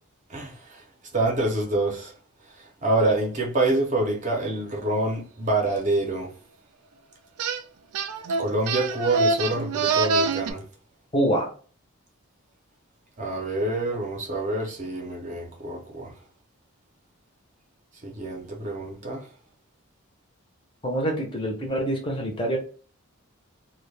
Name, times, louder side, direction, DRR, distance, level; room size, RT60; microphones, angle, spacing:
voice 1, 0.3-0.8 1.1-2.1 2.5-6.3 8.4-10.7 13.2-16.1 18.0-19.3, right 2 dB, 35° right, 0.5 m, -26 dB
sound 1, 7.4-7.6 7.9-10.5, right 4 dB, 90° right, 0.3 m, -25 dB
voice 2, 11.1-11.5 20.8-22.6, right 1 dB, 20° left, 0.6 m, -25 dB
2.2 x 2.1 x 3.1 m
head